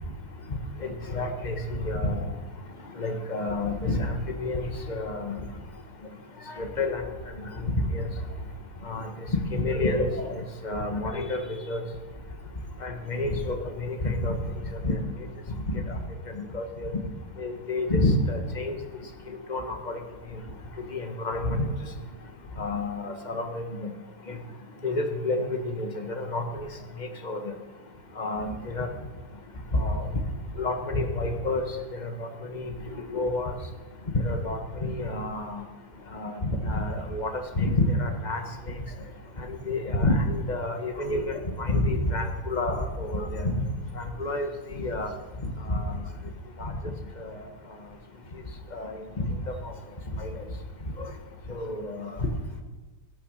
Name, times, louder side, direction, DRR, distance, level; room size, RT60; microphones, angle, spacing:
voice 1, 0.8-2.2 3.0-5.4 6.5-7.1 7.6-8.1 8.8-11.4 11.7-11.8 12.8-14.4 14.8-15.0 15.7-16.0 16.3-16.9 17.4-18.8 19.5-20.0 20.9-21.7 22.6-23.9 24.3-24.4 24.8-26.7 27.0-27.5 28.2-28.9 29.7-30.2 30.6-31.6 32.0-32.7 33.1-33.5 34.2-35.6 36.1-38.4 39.4-43.5 44.0-44.5 44.8-45.1 45.4-45.8 46.6-46.7 47.3-47.4 48.7-49.2 49.6-49.7 50.2-50.3 51.5-52.1, left 2 dB, 25° left, 5 dB, 1.6 m, -29 dB
16.0 x 12.0 x 6.6 m, 1.2 s
omnidirectional pair, 2.1 m